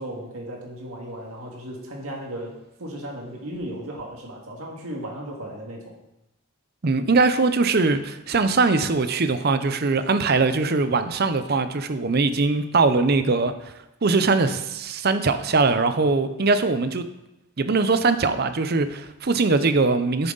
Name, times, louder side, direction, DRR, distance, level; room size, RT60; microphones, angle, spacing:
voice 1, 0.0-2.5 2.8-5.9, right 1 dB, 80° right, -1 dB, 1.9 m, -35 dB
voice 2, 6.8-13.7 14.0-17.0 17.6-20.3, right 3 dB, 45° right, 11 dB, 0.6 m, -21 dB
9.8 x 7.5 x 3.9 m, 0.92 s
head